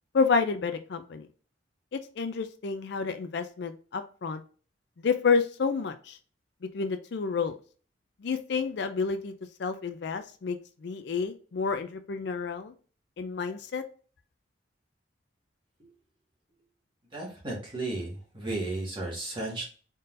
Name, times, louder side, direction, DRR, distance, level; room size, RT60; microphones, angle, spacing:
voice 1, 0.1-1.3 1.9-4.4 5.0-6.2 6.7-7.6 8.2-9.3 9.6-10.6 10.8-12.7 13.2-13.8, left 5 dB, 55° left, 9 dB, 0.4 m, -29 dB
voice 2, 17.1-19.6, right 2 dB, 25° right, -4 dB, 1.7 m, -34 dB
4.1 x 3.8 x 2.5 m, 0.40 s
head